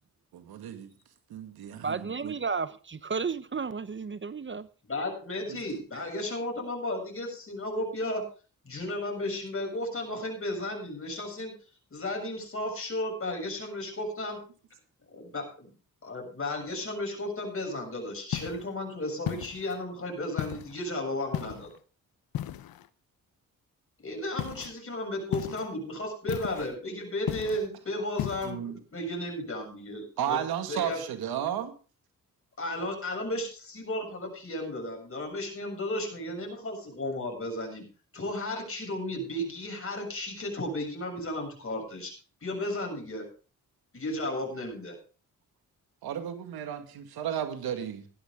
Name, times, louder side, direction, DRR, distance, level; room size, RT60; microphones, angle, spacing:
voice 1, 0.3-0.9 1.3-2.3 5.5-5.6 28.4-28.8 30.2-31.7 46.0-48.0, right 10 dB, 90° right, 2.0 m, -33 dB
voice 2, 1.8-4.7, right 5 dB, 35° right, 0.8 m, -33 dB
voice 3, 4.9-8.3 8.6-11.5 11.9-14.4 15.1-15.7 16.0-21.7 24.0-30.4 30.7-31.0 32.6-37.9 38.1-42.1 42.4-43.3 43.9-45.0, left 1 dB, 35° left, 7.1 m, -34 dB
sound 1, 18.3-18.7 19.3-19.8 20.4-20.8 21.3-21.8 22.3-22.9 24.4-24.7 25.3-25.7 26.3-26.7 27.3-27.7 28.2-28.5, left 12 dB, 75° left, 0.9 m, -35 dB
16.0 x 12.0 x 3.7 m
cardioid pair, 65°, 36 cm